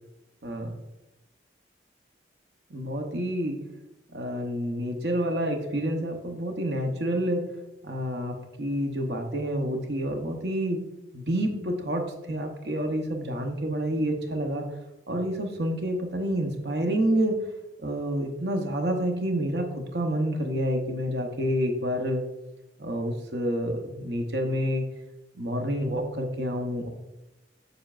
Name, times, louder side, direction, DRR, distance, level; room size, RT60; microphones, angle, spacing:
voice 1, 2.7-3.6 4.1-7.4 7.8-10.8 11.1-14.6 15.1-17.4 17.8-22.2 22.8-24.8 25.4-26.9, equal, 65° right, 3 dB, 0.9 m, -28 dB
6.9 x 6.5 x 2.4 m, 0.97 s
head